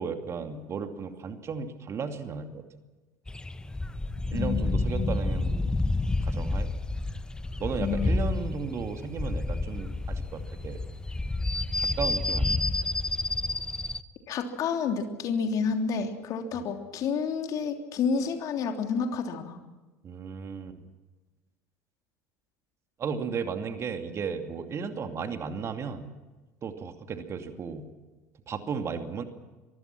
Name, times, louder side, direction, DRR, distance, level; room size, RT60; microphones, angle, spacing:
voice 1, 0.0-2.7 4.3-5.8 6.2-6.7 7.6-10.8 11.8-12.6 16.6-16.7 20.0-20.8 23.0-26.1 26.6-27.9 28.5-29.2, right 6 dB, 35° right, 7 dB, 2.5 m, -35 dB
sound 1, 3.3-14.0, left 2 dB, 10° left, 1.2 m, -29 dB
voice 2, 4.3-5.3 7.8-8.4 14.3-19.6, left 5 dB, 45° left, 5 dB, 3.2 m, -30 dB
25.0 x 23.5 x 6.1 m, 1.2 s
figure-of-eight pair, 65°, 8 cm